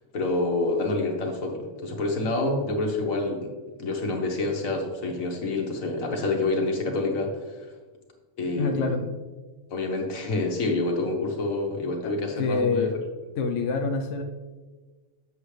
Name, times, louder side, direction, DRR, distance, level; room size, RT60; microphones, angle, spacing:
voice 1, 0.1-3.5 3.8-7.7 8.4-9.1 9.7-12.9, left 2 dB, 85° left, 2 dB, 1.6 m, -27 dB
voice 2, 8.6-9.0 12.4-13.0 13.4-14.2, left 4 dB, 70° left, 3 dB, 1.0 m, -26 dB
8.1 x 6.8 x 3.3 m, 1.3 s
omnidirectional pair, 1.4 m